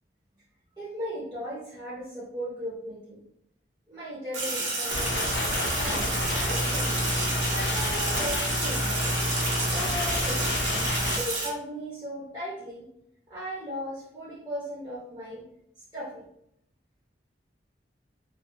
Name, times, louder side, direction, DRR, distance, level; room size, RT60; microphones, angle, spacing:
voice 1, 0.8-3.2 3.9-5.4 5.6-7.0 7.5-9.1 9.7-10.6 11.0-12.8 13.3-15.4 15.9-16.2, equal, 25° right, -9 dB, 0.7 m, -37 dB
Sink (filling or washing), 4.3-11.5, right 2 dB, 75° right, 0.7 m, -30 dB
sound 1, 4.9-11.2, left 1 dB, 75° left, 0.4 m, -29 dB
2.3 x 2.2 x 2.7 m, 0.74 s
head